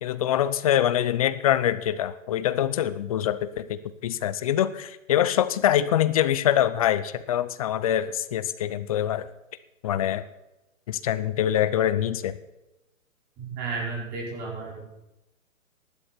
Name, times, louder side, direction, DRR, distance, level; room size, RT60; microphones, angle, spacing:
voice 1, 0.0-9.3 9.8-10.2 10.9-12.4, left 11 dB, 30° left, 15 dB, 0.5 m, -24 dB
voice 2, 13.4-15.0, right 4 dB, 25° right, -3 dB, 5.5 m, -33 dB
16.0 x 11.5 x 4.4 m, 0.96 s
hypercardioid pair, 145°, 40 cm